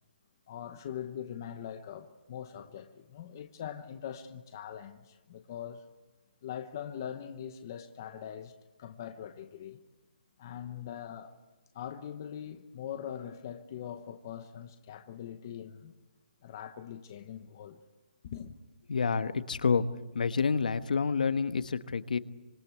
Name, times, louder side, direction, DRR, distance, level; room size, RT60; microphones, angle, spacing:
voice 1, 0.5-5.8 6.4-8.5 8.8-9.8 10.4-11.3 11.7-15.9 16.4-17.8 18.2-18.6, left 9 dB, 20° left, 0.9 m, -42 dB
voice 2, 18.9-19.8 20.1-22.2, left 5 dB, 55° left, 1.3 m, -28 dB
26.0 x 25.5 x 8.4 m
hypercardioid pair, 180°, 5 cm